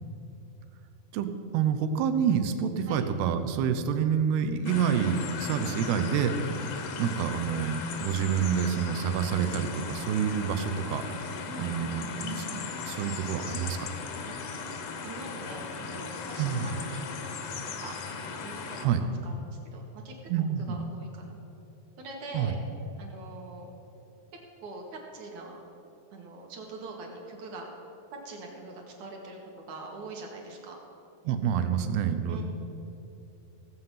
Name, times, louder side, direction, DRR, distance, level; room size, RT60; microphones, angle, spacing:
voice 1, 1.1-6.3 7.0-11.3 11.6-13.9 16.4-16.7 18.8-19.0 20.3-20.8 22.3-22.5 31.3-32.4, right 8 dB, 85° right, 9 dB, 2.7 m, -28 dB
sound 1, 4.6-18.8, left 5 dB, 90° left, 1.4 m, -37 dB
voice 2, 11.5-12.0 14.2-14.4 15.0-17.6 17.8-18.0 18.4-20.2 20.7-21.4 22.0-22.6 23.0-23.7 24.6-25.6 26.1-27.7 28.2-29.4 29.7-30.8 31.6-32.0 32.3-32.4, right 2 dB, 60° right, 0 dB, 2.5 m, -43 dB
16.5 x 7.8 x 5.7 m, 2.9 s
omnidirectional pair, 4.5 m